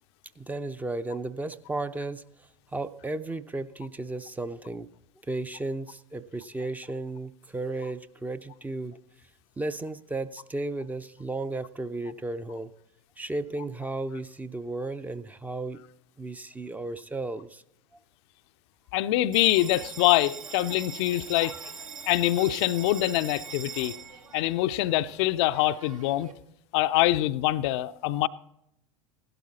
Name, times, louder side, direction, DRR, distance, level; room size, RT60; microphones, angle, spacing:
voice 1, 0.4-4.9 5.2-9.0 9.6-12.7 13.2-15.8 16.2-17.6, right 2 dB, 10° right, 0.5 m, -34 dB
voice 2, 18.9-21.6 22.1-23.9 24.3-26.3 26.7-28.3, left 15 dB, 50° left, 0.5 m, -24 dB
Bell, 19.3-26.3, right 5 dB, 80° right, 1.6 m, -42 dB
16.5 x 12.0 x 4.0 m
figure-of-eight pair, 80°, 17 cm